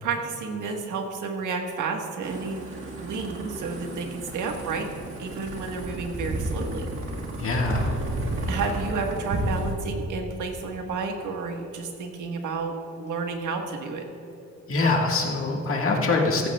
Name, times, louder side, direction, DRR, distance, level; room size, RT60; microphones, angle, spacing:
voice 1, 0.0-2.6 2.9-4.9 5.2-6.9 8.5-14.0, right 4 dB, 90° right, 3 dB, 1.5 m, -31 dB
sound 1, 2.2-9.7, right 1 dB, 45° right, 1.8 m, -32 dB
voice 2, 7.4-8.0 14.7-16.5, left 3 dB, 45° left, 0 dB, 1.7 m, -24 dB
15.0 x 15.0 x 2.4 m, 2.9 s
cardioid pair, 140°, 29 cm